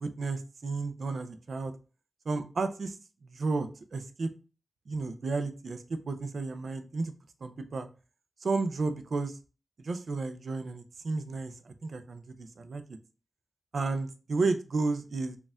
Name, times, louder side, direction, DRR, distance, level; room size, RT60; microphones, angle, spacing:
voice 1, 0.0-1.7 2.3-3.0 3.2-4.3 4.9-7.1 7.4-7.9 8.4-9.4 9.8-12.8 13.7-15.4, right 3 dB, 75° right, 8 dB, 0.5 m, -32 dB
4.3 x 2.4 x 3.4 m, 0.34 s
wide cardioid pair, 75°, 0 cm